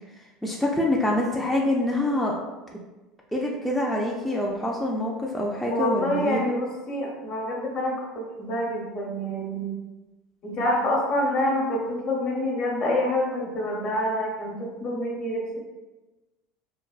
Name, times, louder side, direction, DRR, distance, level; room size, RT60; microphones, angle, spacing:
voice 1, 0.4-2.3 3.3-6.4, left 1 dB, 5° left, -3 dB, 0.4 m, -25 dB
voice 2, 5.7-9.7 10.4-15.6, left 1 dB, 45° left, -1 dB, 0.9 m, -27 dB
3.3 x 2.2 x 2.3 m, 1.1 s
supercardioid pair, 100°, 2 cm